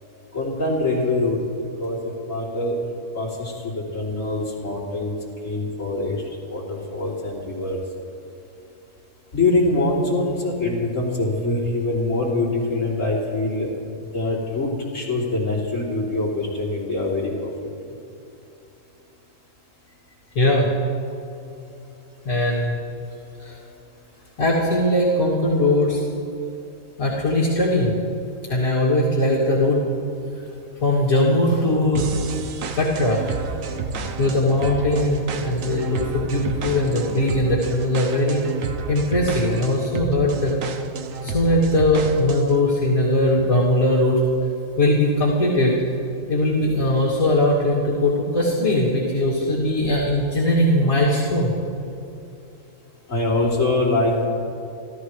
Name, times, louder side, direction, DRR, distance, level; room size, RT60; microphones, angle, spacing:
voice 1, 0.3-1.4 1.8-2.8 3.1-5.1 5.4-6.2 6.5-7.8 9.3-13.7 14.1-17.5 53.1-54.3, left 2 dB, 65° left, -5 dB, 3.5 m, -24 dB
voice 2, 20.3-20.7 22.2-22.8 23.4-23.5 24.4-26.0 27.0-27.9 28.5-29.8 30.8-32.3 32.7-33.2 34.2-38.4 38.9-40.6 41.2-44.2 44.8-45.7 46.3-51.5, left 1 dB, 85° left, -7 dB, 2.9 m, -20 dB
sound 1, 31.9-42.6, right 4 dB, 70° right, 1.3 m, -31 dB
29.0 x 13.5 x 3.3 m, 2.8 s
omnidirectional pair, 1.4 m